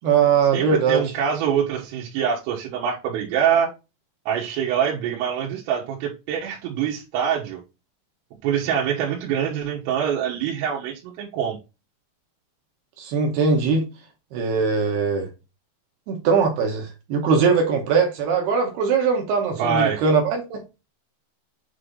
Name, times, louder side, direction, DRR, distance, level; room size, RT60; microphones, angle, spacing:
voice 1, 0.0-1.1 13.0-13.8 14.3-15.3 16.1-20.6, right 5 dB, 70° right, 2.5 m, -21 dB
voice 2, 0.5-3.7 4.3-7.6 8.4-11.6 19.6-20.0, right 8 dB, 90° right, 3.9 m, -24 dB
8.5 x 3.3 x 3.9 m
omnidirectional pair, 5.8 m